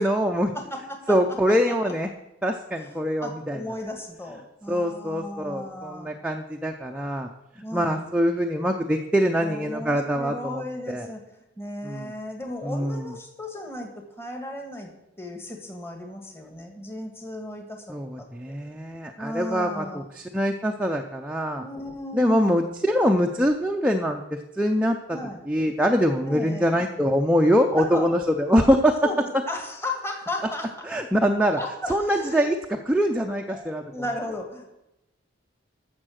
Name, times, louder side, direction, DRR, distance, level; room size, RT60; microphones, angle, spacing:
voice 1, 0.0-0.5 1.1-2.1 2.4-3.6 4.7-7.3 7.7-11.1 11.8-12.1 12.6-13.1 17.9-21.6 22.1-25.2 25.5-28.9 30.9-31.6 31.9-33.8, equal, 5° right, 2 dB, 0.6 m, -24 dB
voice 2, 0.5-1.2 2.7-6.2 7.6-8.1 9.4-11.2 11.6-14.9 15.2-18.6 19.2-20.1 21.6-22.7 25.1-25.4 26.3-26.8 27.7-28.1 29.0-30.7 31.6-32.5 33.5-34.7, left 1 dB, 10° left, 3 dB, 1.7 m, -35 dB
14.0 x 6.7 x 6.4 m, 0.88 s
head